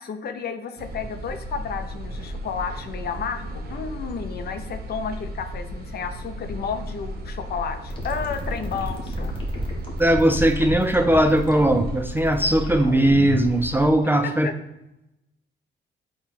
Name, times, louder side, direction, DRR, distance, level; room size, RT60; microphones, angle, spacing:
voice 1, 0.0-9.3 14.4-14.5, left 6 dB, 55° left, 8 dB, 0.5 m, -32 dB
sound 1, 0.8-13.9, equal, 55° right, 0.7 m, -35 dB
sound 2, 7.9-13.5, equal, 25° left, 1.1 m, -32 dB
voice 2, 10.0-14.5, right 1 dB, 10° right, 5 dB, 0.3 m, -19 dB
4.2 x 2.2 x 4.1 m, 0.88 s
cardioid pair, 90°, 20 cm